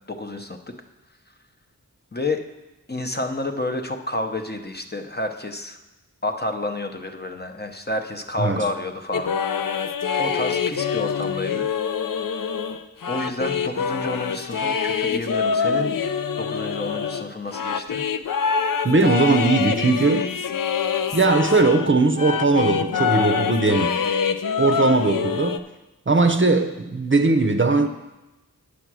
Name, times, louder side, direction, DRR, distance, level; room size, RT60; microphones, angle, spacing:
voice 1, 0.1-0.6 2.1-2.4 2.9-5.8 6.2-9.3 10.2-11.7 12.3-12.5 13.1-15.9 16.4-18.0, left 2 dB, 30° left, 0.8 m, -29 dB
sound 1, 9.1-21.9 22.2-25.6, left 6 dB, 65° left, 0.5 m, -25 dB
voice 2, 18.8-20.3 21.1-23.9 24.6-25.6 26.1-27.9, right 3 dB, 35° right, 0.6 m, -19 dB
8.3 x 6.9 x 6.1 m
wide cardioid pair, 60°, 35 cm